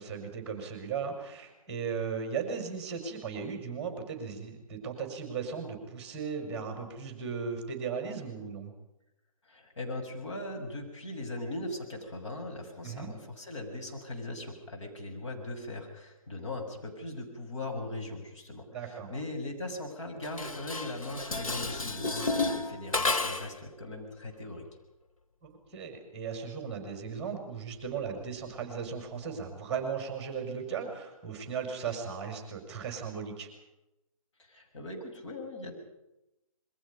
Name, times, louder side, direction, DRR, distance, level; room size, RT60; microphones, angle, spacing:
voice 1, 0.0-8.7 12.8-13.1 18.7-19.1 25.4-33.5, right 6 dB, 5° right, 3 dB, 5.4 m, -37 dB
voice 2, 9.4-24.6 34.4-35.7, left 2 dB, 55° left, 2 dB, 6.7 m, -39 dB
Dishes pots and pans, 20.2-23.6, left 3 dB, 75° left, 2.3 m, -32 dB
27.5 x 22.0 x 5.4 m, 0.89 s
figure-of-eight pair, 145°, 18 cm